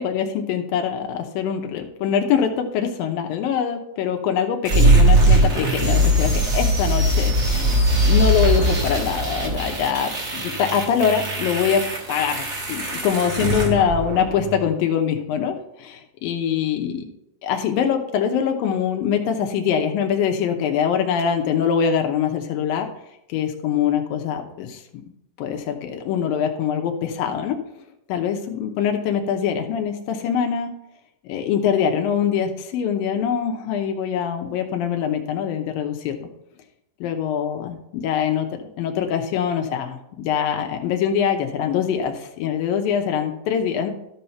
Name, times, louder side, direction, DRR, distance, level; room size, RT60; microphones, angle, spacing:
voice 1, 0.0-11.8 12.1-17.1 17.4-22.9 23.3-24.8 25.4-27.6 28.1-30.7 31.2-36.3 37.0-43.9, left 8 dB, 85° left, 4 dB, 2.6 m, -23 dB
sound 1, 4.6-14.6, right 1 dB, 70° right, 0.6 m, -20 dB
13.5 x 5.6 x 4.4 m, 0.80 s
omnidirectional pair, 4.0 m